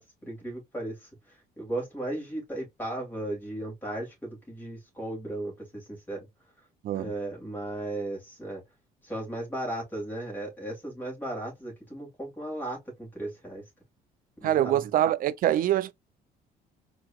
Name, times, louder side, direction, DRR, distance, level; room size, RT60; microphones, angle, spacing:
voice 1, 0.0-6.2 6.9-8.6 9.0-13.6 14.4-14.8, right 1 dB, 10° left, 2.4 m, -36 dB
voice 2, 14.4-15.9, right 12 dB, 55° right, 0.4 m, -24 dB
4.5 x 3.0 x 2.3 m
cardioid pair, 110°, 17 cm